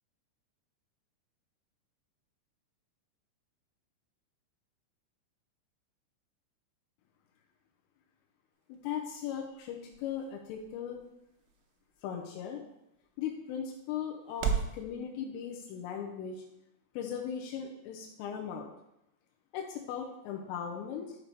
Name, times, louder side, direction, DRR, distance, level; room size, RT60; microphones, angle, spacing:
sound 1, 8.5-14.8, right 7 dB, 85° right, 3.4 m, -40 dB
voice 1, 8.7-11.0 12.0-12.6 13.2-16.4 16.9-18.7 19.5-21.2, left 8 dB, 85° left, 0 dB, 3.4 m, -38 dB
11.0 x 5.6 x 3.4 m, 0.85 s
omnidirectional pair, 5.6 m